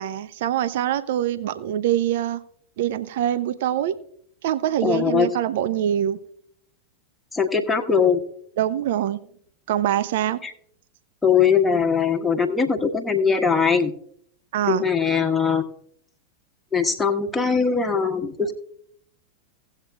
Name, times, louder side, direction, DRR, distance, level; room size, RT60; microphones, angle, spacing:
voice 1, 0.0-2.4 2.8-4.0 4.4-6.2 8.6-9.2 9.7-10.4 14.5-14.9, right 11 dB, 55° right, 14 dB, 0.5 m, -24 dB
voice 2, 4.8-5.3 7.3-8.2 10.4-10.5 11.2-13.9 14.7-15.6 16.7-18.5, left 6 dB, 10° left, 3 dB, 1.4 m, -21 dB
17.5 x 8.0 x 2.4 m, 0.66 s
figure-of-eight pair, 90°, 0 cm